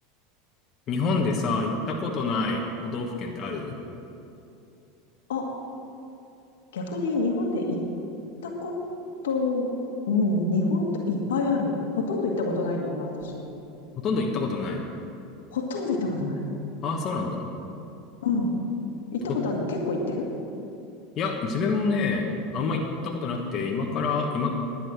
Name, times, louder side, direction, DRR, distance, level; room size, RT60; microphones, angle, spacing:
voice 1, 0.9-3.7 14.0-14.8 16.8-17.4 19.3-19.4 21.2-24.5, left 4 dB, 40° left, 0 dB, 1.4 m, -27 dB
voice 2, 6.7-7.8 8.4-8.8 9.2-9.7 10.1-13.4 15.5-16.5 18.2-18.6 19.1-20.3, left 3 dB, 85° left, 0 dB, 1.8 m, -27 dB
11.0 x 8.7 x 6.1 m, 2.7 s
hypercardioid pair, 100°, 0 cm